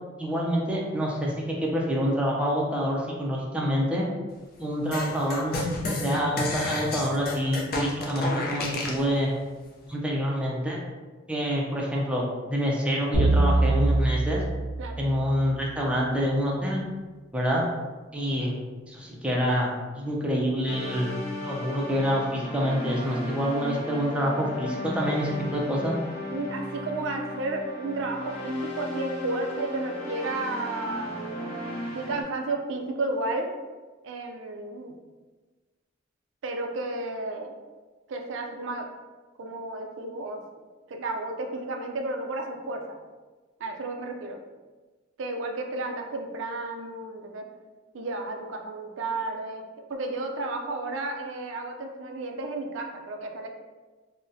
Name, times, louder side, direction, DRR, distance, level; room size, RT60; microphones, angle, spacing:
voice 1, 0.2-4.0 4.6-5.5 5.9-9.3 9.9-10.8 11.3-14.4 15.0-16.8 17.3-17.6 18.1-18.5 18.9-21.1 21.4-26.0, equal, 5° right, -3 dB, 0.4 m, -27 dB
sound 1, 4.9-9.0, left 2 dB, 50° left, 0.5 m, -30 dB
sound 2, 13.1-15.6, right 2 dB, 85° left, 0.8 m, -24 dB
sound 3, 20.7-32.2, left 1 dB, 30° left, 1.2 m, -35 dB
voice 2, 26.3-31.5 31.9-33.5 34.0-34.9 36.4-37.5 38.1-38.8 39.4-40.4 40.9-43.0 43.6-44.4 45.2-47.4 47.9-49.6 49.9-53.5, right 2 dB, 65° right, 3 dB, 0.4 m, -32 dB
3.9 x 2.1 x 2.6 m, 1.3 s
head